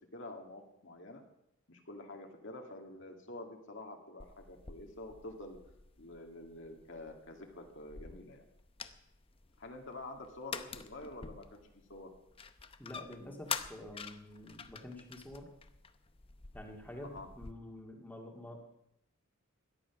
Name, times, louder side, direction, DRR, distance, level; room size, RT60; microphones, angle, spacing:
voice 1, 0.1-1.2 1.7-5.6 6.0-8.4 9.6-12.1 17.0-17.3, left 2 dB, 60° left, 3 dB, 2.2 m, -48 dB
sound 1, 4.2-17.5, left 6 dB, 25° left, 0.7 m, -47 dB
voice 2, 12.8-15.5 16.5-18.6, left 1 dB, 10° left, 0 dB, 2.1 m, -48 dB
17.0 x 12.0 x 6.0 m, 0.81 s
head